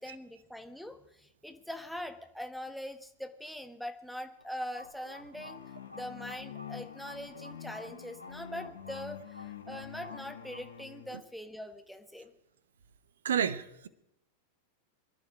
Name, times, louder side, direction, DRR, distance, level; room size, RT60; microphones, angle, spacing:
voice 1, 0.0-5.6 5.9-12.3, equal, ahead, 7 dB, 1.5 m, -42 dB
sound 1, 4.4-10.8, left 1 dB, 90° right, 1.5 m, -51 dB
sound 2, 5.3-11.2, left 10 dB, 60° left, 1.1 m, -47 dB
voice 2, 13.2-13.9, right 8 dB, 65° right, 15 dB, 1.1 m, -30 dB
25.0 x 11.0 x 5.1 m, 0.81 s
figure-of-eight pair, 90°, 0 cm